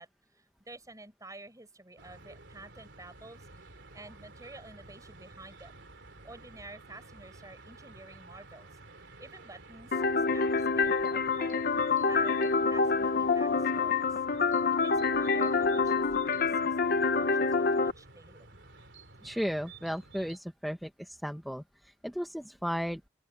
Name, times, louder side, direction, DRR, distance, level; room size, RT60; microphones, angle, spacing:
voice 1, 0.0-5.8 6.2-8.7 9.0-9.9 10.3-10.5 10.8-14.2 14.7-18.5, right 2 dB, 20° right, 5.3 m, -50 dB
sound 1, 2.0-20.4, right 3 dB, 75° right, 3.5 m, -52 dB
sound 2, 9.9-17.9, left 4 dB, 55° left, 0.9 m, -27 dB
voice 2, 19.2-23.0, equal, ahead, 1.3 m, -35 dB
open air
head